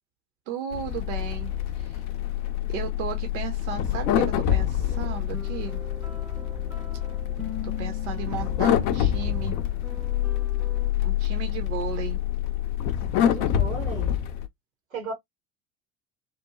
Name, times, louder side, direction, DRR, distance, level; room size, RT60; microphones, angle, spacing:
voice 1, 0.5-1.5 1.8-2.0 2.7-5.8 7.6-9.6 11.0-12.2, right 8 dB, 60° right, 0.7 m, -35 dB
sound 1, 0.7-14.5, left 11 dB, 50° left, 0.5 m, -27 dB
sound 2, 4.8-10.9, left 2 dB, ahead, 0.6 m, -42 dB
voice 2, 13.3-14.1 14.9-15.1, right 4 dB, 85° right, 1.1 m, -35 dB
3.0 x 2.1 x 2.2 m
figure-of-eight pair, 70°, 40 cm